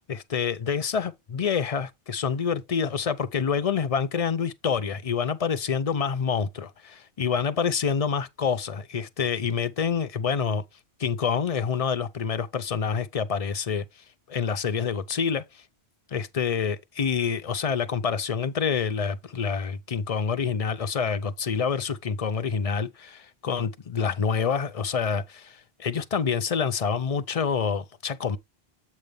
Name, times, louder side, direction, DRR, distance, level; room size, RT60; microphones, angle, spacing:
voice 1, 0.1-10.6 11.0-13.9 14.3-15.6 16.1-28.4, left 6 dB, 45° left, 0.5 m, -27 dB
7.8 x 5.2 x 3.4 m
omnidirectional pair, 1.1 m